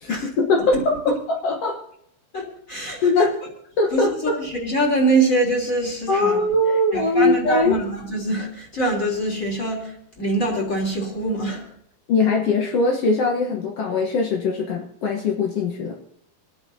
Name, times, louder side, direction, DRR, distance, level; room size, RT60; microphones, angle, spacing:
voice 1, 0.0-1.8 3.0-3.4 3.8-4.4 6.1-7.8 12.1-16.0, left 3 dB, 70° left, 0 dB, 1.4 m, -21 dB
voice 2, 2.3-3.1 3.9-6.4 6.9-11.6, right 2 dB, 20° left, -1 dB, 3.5 m, -24 dB
29.0 x 9.8 x 2.8 m, 0.72 s
omnidirectional pair, 4.5 m